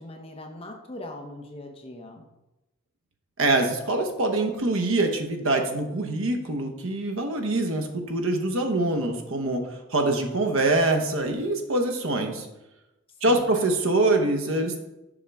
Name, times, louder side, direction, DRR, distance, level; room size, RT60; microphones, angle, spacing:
voice 1, 0.0-2.3 13.2-13.5, left 1 dB, 25° left, 3 dB, 0.7 m, -40 dB
voice 2, 3.4-9.6 9.9-12.5 13.2-14.8, right 2 dB, 70° right, 4 dB, 0.9 m, -24 dB
7.1 x 5.4 x 3.5 m, 0.97 s
head